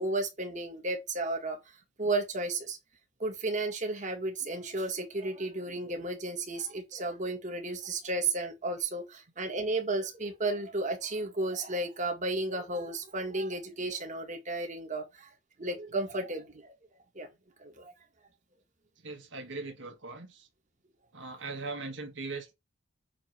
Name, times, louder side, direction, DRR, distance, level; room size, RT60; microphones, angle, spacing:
voice 1, 0.0-1.6 2.0-2.8 3.2-15.3 15.6-16.7 17.2-17.3 17.6-17.9, right 2 dB, 40° right, 2.0 m, -33 dB
voice 2, 19.0-20.5 21.1-22.5, right 3 dB, 85° right, 1.9 m, -40 dB
8.6 x 3.2 x 6.0 m
head